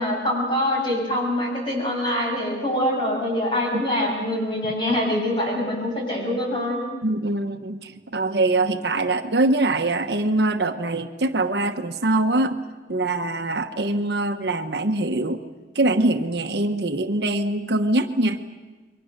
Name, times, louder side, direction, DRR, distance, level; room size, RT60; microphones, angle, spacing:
voice 1, 0.0-6.8, left 1 dB, 25° left, -1 dB, 7.9 m, -24 dB
voice 2, 7.0-12.6 12.9-15.4 15.7-18.4, right 2 dB, 65° right, 6 dB, 1.1 m, -23 dB
29.0 x 23.0 x 6.6 m, 1.3 s
head